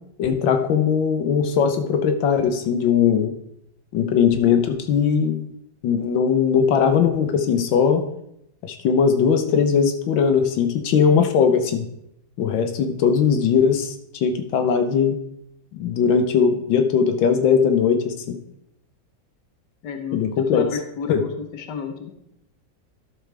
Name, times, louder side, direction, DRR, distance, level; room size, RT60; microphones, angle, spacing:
voice 1, 0.2-3.3 3.9-5.5 5.8-8.0 8.6-11.8 12.4-15.2 15.7-18.4 20.1-20.6 21.1-21.2, left 6 dB, 85° left, 6 dB, 1.5 m, -19 dB
voice 2, 19.8-22.2, left 6 dB, 65° left, 5 dB, 1.6 m, -32 dB
12.5 x 6.1 x 3.3 m, 0.78 s
omnidirectional pair, 2.0 m